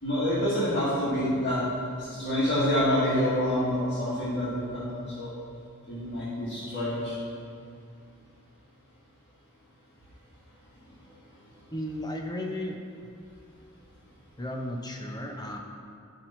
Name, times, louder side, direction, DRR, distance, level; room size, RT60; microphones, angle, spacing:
voice 1, 0.0-1.6 1.9-5.3 5.9-7.1, equal, 55° left, -10 dB, 2.2 m, -27 dB
voice 2, 11.7-12.8 14.4-15.6, left 1 dB, 20° left, 1 dB, 0.8 m, -34 dB
11.5 x 5.4 x 4.4 m, 2.4 s
head